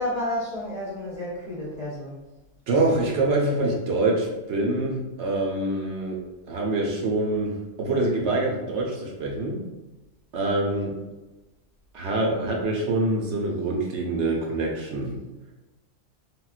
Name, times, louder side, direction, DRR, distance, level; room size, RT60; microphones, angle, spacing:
voice 1, 0.0-2.2, left 1 dB, 45° left, -6 dB, 0.6 m, -30 dB
voice 2, 2.7-6.2 6.5-9.6 10.3-10.9 11.9-15.2, right 2 dB, 70° right, -1 dB, 0.9 m, -25 dB
3.6 x 2.3 x 2.4 m, 1.1 s
omnidirectional pair, 1.3 m